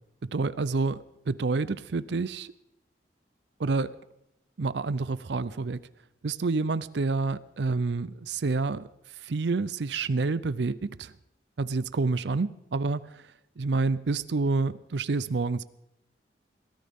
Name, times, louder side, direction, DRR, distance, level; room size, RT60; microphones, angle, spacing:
voice 1, 0.2-2.5 3.6-4.0 4.6-5.8 6.2-8.9 9.2-11.1 11.6-13.1 13.6-15.6, right 3 dB, 75° right, 17 dB, 0.5 m, -28 dB
22.0 x 14.0 x 3.6 m, 0.83 s
head